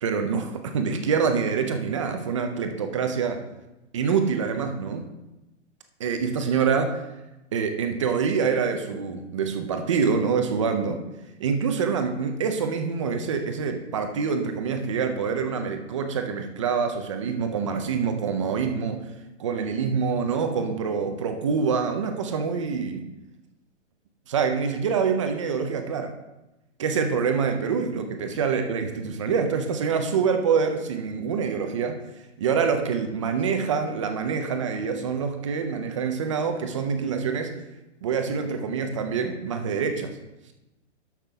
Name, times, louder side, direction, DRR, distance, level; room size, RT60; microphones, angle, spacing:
voice 1, 0.0-3.4 3.9-5.1 6.0-7.0 7.5-11.0 11.4-19.0 19.4-23.0 24.3-26.1 26.8-32.0 32.4-37.5 38.0-40.1, right 6 dB, 25° right, 6 dB, 0.5 m, -26 dB
12.5 x 5.9 x 3.4 m, 0.99 s
hypercardioid pair, 175°, 36 cm